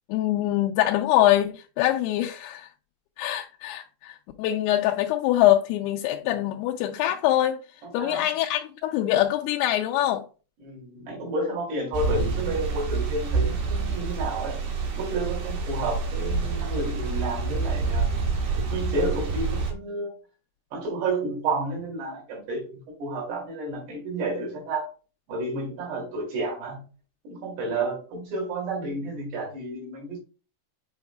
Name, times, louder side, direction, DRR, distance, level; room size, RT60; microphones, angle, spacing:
voice 1, 0.1-2.7 3.2-7.6 7.9-10.2, left 13 dB, 90° left, 2.6 m, -24 dB
voice 2, 7.8-8.3 10.6-14.7 14.9-18.1 18.6-20.2 20.7-24.9 25.3-26.9 27.2-30.2, right 2 dB, 90° right, 4.7 m, -31 dB
sound 1, 11.9-19.7, right 4 dB, 60° right, 2.4 m, -27 dB
7.8 x 5.5 x 2.2 m
omnidirectional pair, 4.6 m